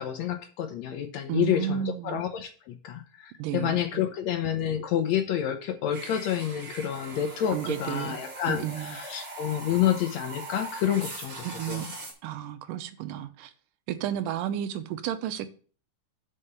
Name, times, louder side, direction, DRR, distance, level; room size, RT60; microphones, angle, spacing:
voice 1, 0.0-11.9, left 10 dB, 75° left, 6 dB, 1.7 m, -29 dB
voice 2, 1.3-2.2 3.4-4.0 7.5-8.2 8.5-9.0 11.4-11.9 12.2-13.5 13.9-15.5, right 11 dB, 90° right, 10 dB, 2.3 m, -32 dB
sound 1, 5.9-12.1, right 2 dB, 35° right, 2.8 m, -41 dB
5.5 x 5.5 x 6.7 m, 0.40 s
omnidirectional pair, 3.8 m